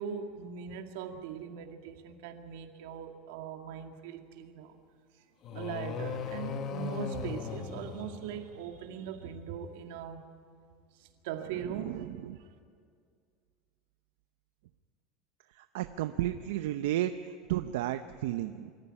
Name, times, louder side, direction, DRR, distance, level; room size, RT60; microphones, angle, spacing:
voice 1, 0.0-4.7 5.5-10.2 11.0-12.5, right 7 dB, 65° right, 5 dB, 2.1 m, -40 dB
sound 1, 5.4-8.8, left 6 dB, 30° left, 1.2 m, -38 dB
voice 2, 11.6-12.4 15.5-18.7, right 13 dB, 80° right, 9 dB, 0.7 m, -33 dB
24.5 x 14.0 x 10.0 m, 2.2 s
cardioid pair, 180°, 0 cm